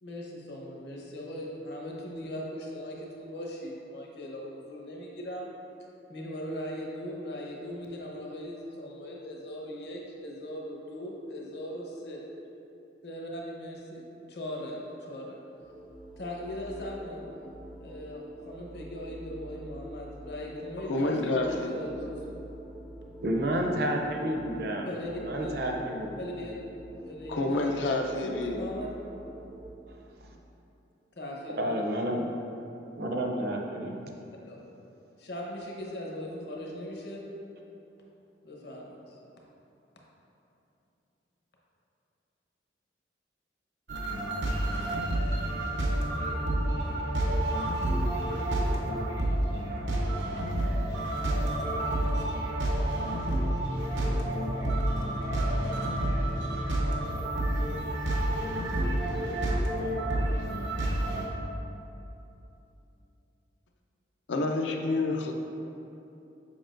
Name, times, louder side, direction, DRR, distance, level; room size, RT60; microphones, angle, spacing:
voice 1, 0.0-5.5 6.1-12.2 13.0-15.4 16.2-17.3 17.8-22.4 24.8-25.1 25.4-25.7 26.2-26.6 27.1-28.9 31.2-31.8 33.3-33.4 34.4-34.7 35.2-37.2 38.4-39.2, left 1 dB, 65° left, -2 dB, 1.0 m, -39 dB
sound 1, 15.4-29.7, right 1 dB, ahead, 0.3 m, -46 dB
voice 2, 20.9-21.7 27.3-28.6 64.3-65.4, left 2 dB, 85° left, 3 dB, 0.5 m, -28 dB
voice 3, 23.2-24.9 25.2-26.1 29.9-30.4 31.6-32.2 33.0-34.0, right 1 dB, 60° right, 1 dB, 0.6 m, -30 dB
sound 2, 43.9-61.3, right 1 dB, 90° right, 0.8 m, -29 dB
7.1 x 5.2 x 2.5 m, 2.9 s
head